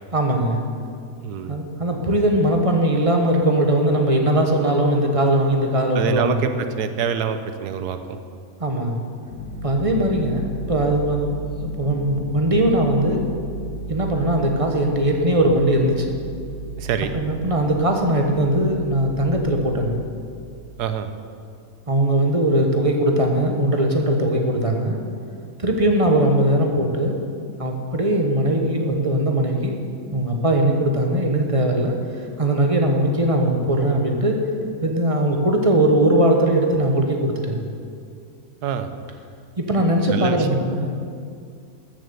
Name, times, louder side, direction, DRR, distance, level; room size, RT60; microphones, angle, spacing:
voice 1, 0.1-0.6 1.5-6.4 8.6-9.0 9.6-13.3 13.9-16.1 17.1-20.0 21.9-25.0 25.6-27.1 27.6-29.8 30.1-31.9 32.4-34.4 34.8-37.6 39.6-40.9, right 1 dB, 25° right, 2 dB, 1.1 m, -20 dB
voice 2, 1.2-1.6 5.9-8.2 16.8-17.1 20.8-21.1 38.6-38.9 40.1-40.5, right 7 dB, 85° right, 9 dB, 1.3 m, -25 dB
sound 1, 9.3-20.1, right 3 dB, 80° left, 1.7 m, -34 dB
13.5 x 7.3 x 6.9 m, 2.3 s
omnidirectional pair, 1.7 m